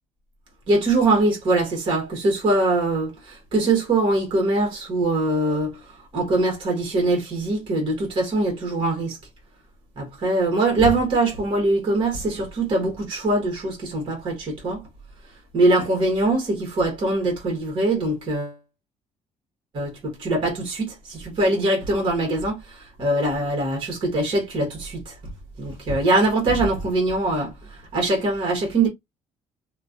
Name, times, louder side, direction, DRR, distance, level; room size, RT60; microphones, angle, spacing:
voice 1, 0.7-5.8 6.1-9.2 10.0-14.8 15.5-18.6 19.7-25.1 25.6-27.5 27.9-28.9, right 2 dB, 45° right, 1.3 m, -22 dB
3.0 x 2.4 x 2.4 m
cardioid pair, 160°, 12 cm